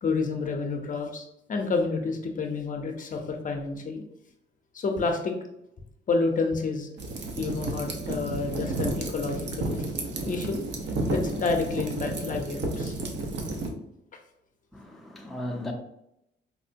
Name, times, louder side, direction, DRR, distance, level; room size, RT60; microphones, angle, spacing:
voice 1, 0.0-4.0 4.7-5.3 6.1-6.9 7.4-9.9 10.2-10.6 11.1-13.0, left 4 dB, 40° left, 0.6 m, -29 dB
sound 1, 7.0-13.7, right 2 dB, 60° right, 0.7 m, -32 dB
voice 2, 14.7-15.7, left 1 dB, ahead, 0.5 m, -36 dB
4.3 x 2.1 x 2.6 m
cardioid pair, 90°, 20 cm